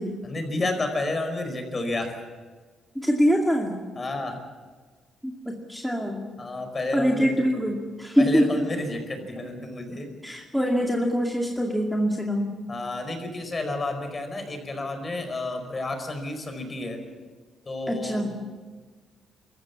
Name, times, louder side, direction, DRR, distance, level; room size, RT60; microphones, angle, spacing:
voice 1, 0.2-2.1 4.0-4.4 6.4-7.4 8.2-10.1 12.7-17.0 17.7-18.4, left 2 dB, 30° left, 6 dB, 5.0 m, -31 dB
voice 2, 2.9-3.8 5.2-6.3 6.9-8.7 10.2-12.6 17.9-18.4, equal, ahead, -1 dB, 2.3 m, -24 dB
24.5 x 14.5 x 8.6 m, 1.4 s
cardioid pair, 90°, 0 cm